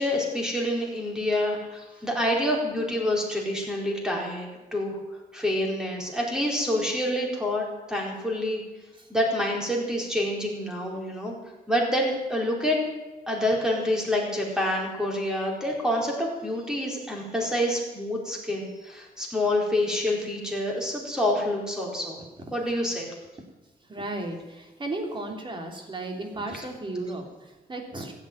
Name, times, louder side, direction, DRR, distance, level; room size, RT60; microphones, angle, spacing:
voice 1, 0.0-5.0 5.3-8.6 9.1-11.3 11.7-12.8 13.3-22.2 22.5-23.1, left 1 dB, 5° right, -1 dB, 4.5 m, -27 dB
voice 2, 23.9-28.1, right 2 dB, 30° right, 3 dB, 3.0 m, -34 dB
15.5 x 8.4 x 9.2 m, 1.1 s
cardioid pair, 115°, 16 cm